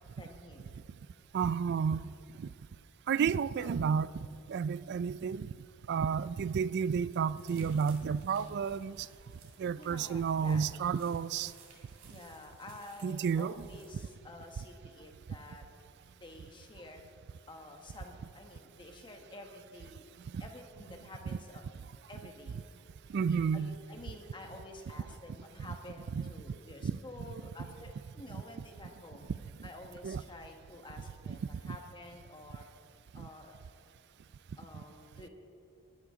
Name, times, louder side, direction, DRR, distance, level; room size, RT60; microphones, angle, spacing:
voice 1, 0.2-0.8 3.6-3.7 9.7-10.8 12.1-15.7 16.2-17.0 17.5-20.1 20.4-21.6 22.1-22.6 23.3-29.2 29.6-32.7 33.1-33.6 34.6-35.3, left 2 dB, 20° left, 1.4 m, -50 dB
voice 2, 1.3-2.1 2.4-2.5 3.1-4.1 4.5-5.5 5.9-9.1 9.6-11.5 13.0-13.5 20.3-20.4 23.1-23.7 26.2-26.3 26.8-27.0 28.3-28.4 30.0-30.2 31.6-31.8 33.1-33.3, right 6 dB, 50° right, 0.3 m, -31 dB
sound 1, 7.4-14.0, right 4 dB, 85° right, 3.0 m, -59 dB
20.5 x 12.0 x 3.8 m
head